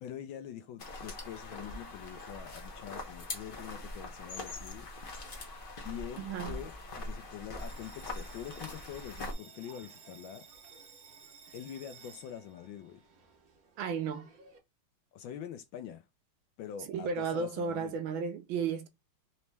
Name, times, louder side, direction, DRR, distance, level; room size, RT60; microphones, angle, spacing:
voice 1, 0.0-4.9 5.8-6.7 7.0-10.5 11.5-13.0 15.1-16.0 16.6-17.9, left 10 dB, 75° left, 1.2 m, -44 dB
sound 1, 0.8-9.3, left 2 dB, 50° left, 0.6 m, -42 dB
voice 2, 6.2-6.7 13.8-14.3 16.9-18.9, right 6 dB, 75° right, 1.4 m, -34 dB
Bell, 7.6-14.6, right 5 dB, 55° right, 1.2 m, -55 dB
4.2 x 2.9 x 3.2 m
omnidirectional pair, 2.4 m